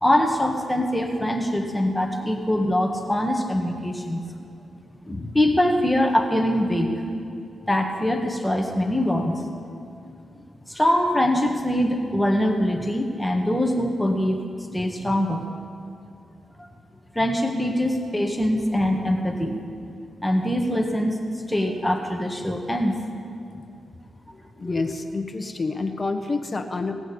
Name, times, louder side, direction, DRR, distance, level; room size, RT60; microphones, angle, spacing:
voice 1, 0.0-4.2 5.0-6.9 7.6-9.4 10.7-14.4 14.7-15.5 16.6-16.7 17.1-19.6 20.2-21.2 21.5-22.9 24.6-24.7, left 1 dB, 5° left, 2 dB, 1.6 m, -23 dB
voice 2, 24.3-26.9, left 3 dB, 35° left, 5 dB, 1.4 m, -28 dB
18.0 x 6.3 x 8.6 m, 2.5 s
cardioid pair, 55°, 0 cm